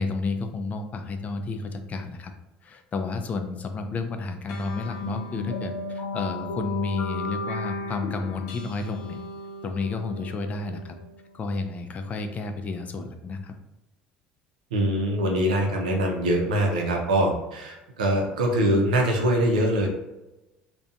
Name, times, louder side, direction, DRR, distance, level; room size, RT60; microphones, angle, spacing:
voice 1, 0.0-2.3 2.6-9.2 9.6-11.0 11.3-13.5, left 3 dB, 35° left, 6 dB, 0.4 m, -31 dB
sound 1, 4.5-11.4, left 2 dB, 75° left, 0.6 m, -35 dB
voice 2, 14.7-19.9, right 1 dB, 90° right, 1 dB, 0.5 m, -23 dB
2.5 x 2.2 x 2.5 m, 1.0 s
hypercardioid pair, 75°, 4 cm